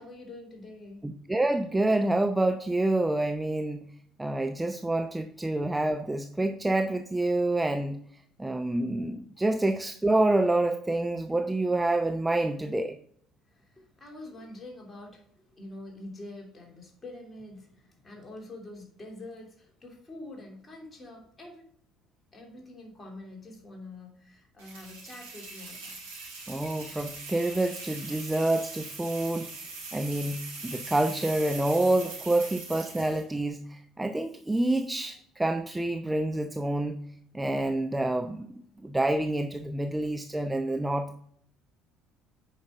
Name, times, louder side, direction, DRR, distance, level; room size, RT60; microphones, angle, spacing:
voice 1, 0.0-1.0 9.4-9.5 12.4-12.5 13.5-21.6 22.3-26.0, left 2 dB, 25° left, 0 dB, 3.0 m, -46 dB
voice 2, 1.0-3.9 4.2-8.0 8.4-13.0 26.5-29.5 29.9-37.0 37.3-41.1, right 2 dB, 10° right, 7 dB, 0.6 m, -27 dB
sound 1, 24.6-33.3, right 3 dB, 75° right, 3.0 m, -41 dB
8.7 x 5.5 x 3.6 m, 0.65 s
figure-of-eight pair, 55°, 0 cm